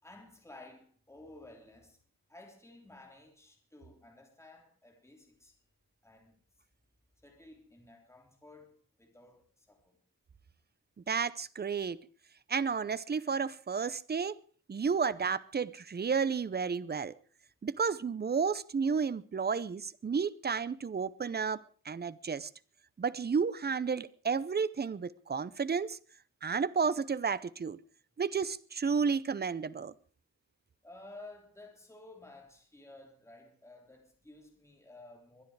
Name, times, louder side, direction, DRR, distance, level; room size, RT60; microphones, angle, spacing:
voice 1, 0.0-2.0 2.3-5.6 6.0-6.4 7.2-10.0 30.8-35.4, left 2 dB, 10° left, 3.3 m, -54 dB
voice 2, 11.1-12.1 12.5-14.4 14.7-17.2 17.6-22.5 23.0-26.0 26.4-27.8 28.2-29.9, right 5 dB, 30° right, 0.6 m, -32 dB
23.0 x 10.0 x 4.8 m
wide cardioid pair, 135°, 35 cm